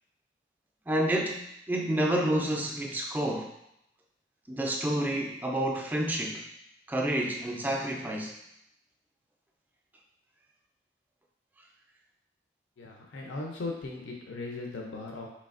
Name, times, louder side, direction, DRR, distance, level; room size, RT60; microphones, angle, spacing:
voice 1, 0.9-3.5 4.5-6.4 6.9-8.4, right 1 dB, 10° right, -1 dB, 0.3 m, -29 dB
voice 2, 12.8-15.3, left 3 dB, 75° left, 0 dB, 0.5 m, -38 dB
4.1 x 3.1 x 2.5 m, 0.79 s
head